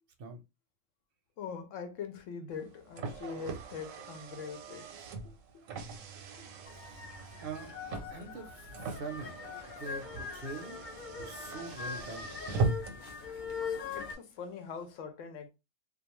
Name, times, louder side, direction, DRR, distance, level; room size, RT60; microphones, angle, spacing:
voice 1, 1.4-4.9 5.2-5.6 13.9-15.5, left 6 dB, 75° left, 0.9 m, -42 dB
Car, 2.5-13.1, right 3 dB, 85° right, 1.0 m, -40 dB
sound 1, 6.7-14.1, left 6 dB, 55° left, 0.6 m, -42 dB
voice 2, 6.7-7.0 7.4-7.7 8.1-9.4 9.8-12.3, right 4 dB, 55° right, 0.7 m, -44 dB
2.3 x 2.3 x 3.0 m
omnidirectional pair, 1.3 m